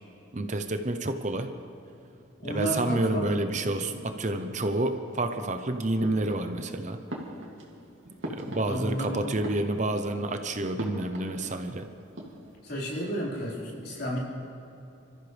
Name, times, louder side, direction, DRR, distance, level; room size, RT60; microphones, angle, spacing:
voice 1, 0.3-1.5 2.4-7.0 8.3-11.9, right 2 dB, 40° right, 7 dB, 0.8 m, -29 dB
voice 2, 2.4-3.2 8.6-9.4 12.6-14.2, equal, 50° left, -6 dB, 4.7 m, -32 dB
sound 1, 6.0-6.7 7.1-9.1 9.3-10.2 10.8-11.8 12.0-12.6, equal, 85° right, 2.5 m, -40 dB
27.0 x 14.5 x 3.4 m, 2.9 s
head